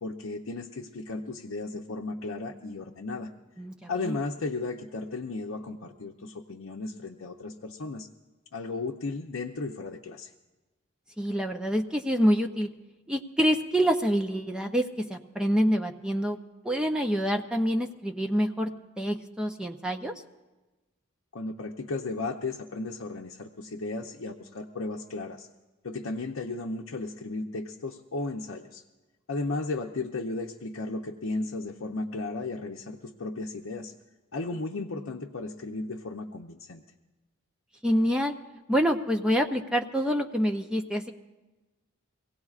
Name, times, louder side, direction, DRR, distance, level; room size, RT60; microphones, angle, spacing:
voice 1, 0.0-3.3 3.9-8.1 8.5-10.3 21.3-25.5 25.8-28.8 29.3-33.9 34.3-36.8, left 3 dB, 80° left, 0 dB, 0.6 m, -35 dB
voice 2, 3.6-4.2 11.2-12.7 13.1-16.4 16.6-18.7 19.0-20.1 37.8-38.3 38.7-41.1, equal, 5° right, 4 dB, 0.5 m, -26 dB
24.0 x 17.0 x 2.4 m, 1.2 s
head